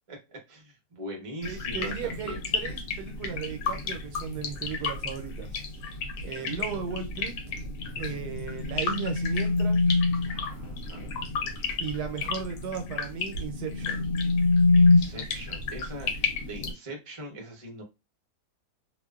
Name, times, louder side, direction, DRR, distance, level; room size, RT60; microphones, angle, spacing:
voice 1, 0.5-2.4 6.2-6.6 10.3-11.1 14.7-17.8, right 1 dB, 35° right, 0.5 m, -42 dB
sound 1, 1.4-16.7, left 4 dB, 85° left, 1.3 m, -34 dB
voice 2, 1.4-5.6 6.2-7.4 8.0-9.8 11.8-14.0, right 6 dB, 80° right, 1.2 m, -36 dB
sound 2, 8.2-10.4 13.4-15.0, left 3 dB, 65° left, 1.1 m, -23 dB
2.9 x 2.2 x 2.3 m
omnidirectional pair, 1.8 m